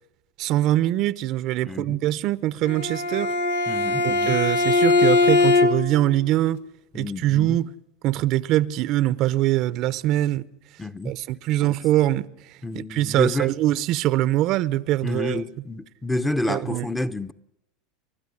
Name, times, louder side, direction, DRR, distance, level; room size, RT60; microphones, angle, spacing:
voice 1, 0.4-3.3 4.0-6.6 6.9-7.7 8.0-10.5 11.0-15.4 16.5-16.9, right 14 dB, 55° right, 0.7 m, -23 dB
voice 2, 1.6-2.0 3.7-4.4 6.9-7.6 10.8-11.1 11.6-11.8 12.6-13.6 15.0-17.3, left 2 dB, 10° left, 0.9 m, -29 dB
Bowed string instrument, 2.7-6.0, left 3 dB, 90° left, 1.7 m, -20 dB
29.5 x 12.0 x 9.9 m
supercardioid pair, 110°, 0 cm